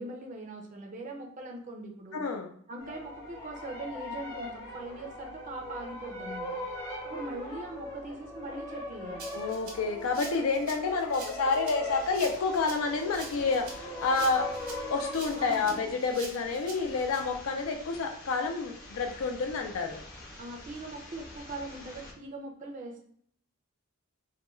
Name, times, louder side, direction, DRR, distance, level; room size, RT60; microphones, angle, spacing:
voice 1, 0.0-2.2 2.7-6.6 7.0-9.3 15.4-15.7 20.4-23.0, right 2 dB, 35° right, 1 dB, 0.4 m, -41 dB
voice 2, 2.1-2.5 9.3-14.6 14.9-20.0, left 4 dB, 80° left, 5 dB, 0.4 m, -29 dB
sound 1, 2.8-15.9, left 1 dB, 15° left, 0.5 m, -40 dB
Rattle (instrument), 9.2-17.2, right 4 dB, 80° right, 0.7 m, -45 dB
sound 2, 11.8-22.1, left 1 dB, 45° left, 0.8 m, -48 dB
2.3 x 2.2 x 3.0 m, 0.62 s
head